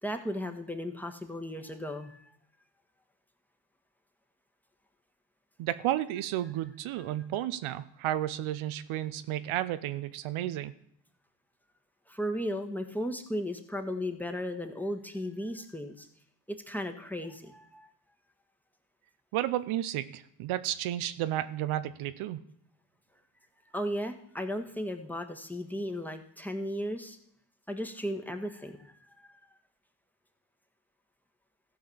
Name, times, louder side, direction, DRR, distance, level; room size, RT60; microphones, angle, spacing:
voice 1, 0.0-2.3 12.1-16.1 16.5-17.9 23.7-27.2 27.7-29.4, equal, 5° left, 5 dB, 1.5 m, -35 dB
voice 2, 5.6-10.7 19.3-22.4, right 13 dB, 85° right, 13 dB, 0.7 m, -32 dB
14.0 x 4.9 x 7.1 m, 0.69 s
supercardioid pair, 60°, 48 cm